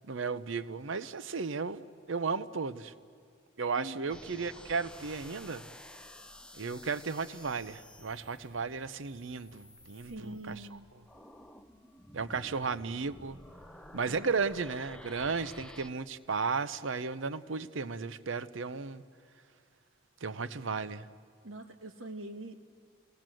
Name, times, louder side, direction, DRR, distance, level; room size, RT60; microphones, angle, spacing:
voice 1, 0.1-2.9 3.6-5.6 6.6-10.8 12.1-13.4 13.9-19.0 20.2-21.1, right 4 dB, 70° right, 0.7 m, -34 dB
voice 2, 3.7-4.1 10.0-10.9 14.0-14.3 15.3-15.5 21.4-22.6, right 1 dB, 90° right, 1.7 m, -44 dB
sound 1, 4.1-15.9, left 1 dB, 5° left, 0.6 m, -52 dB
27.5 x 18.5 x 7.7 m
head